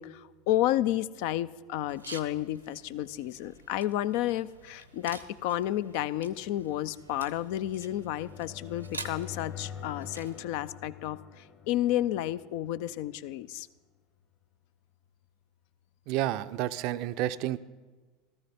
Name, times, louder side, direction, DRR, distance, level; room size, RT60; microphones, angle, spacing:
voice 1, 0.0-13.7, left 13 dB, 55° left, 16 dB, 0.4 m, -31 dB
sound 1, 1.9-10.4, right 3 dB, 90° right, 0.8 m, -48 dB
sound 2, 2.6-13.4, left 8 dB, 40° left, 1.4 m, -48 dB
voice 2, 16.1-17.6, right 14 dB, 50° right, 13 dB, 0.5 m, -30 dB
16.0 x 14.0 x 4.3 m, 1.3 s
figure-of-eight pair, 75°, 0 cm